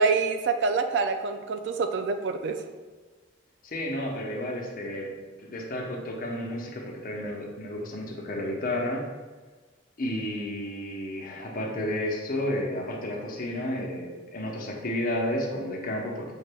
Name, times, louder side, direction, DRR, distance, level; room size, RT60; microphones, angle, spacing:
voice 1, 0.0-2.6, right 4 dB, 65° right, 7 dB, 0.3 m, -26 dB
voice 2, 3.6-5.1 5.4-9.0 10.0-16.4, left 1 dB, 45° left, -1 dB, 0.7 m, -32 dB
6.1 x 2.2 x 3.4 m, 1.3 s
head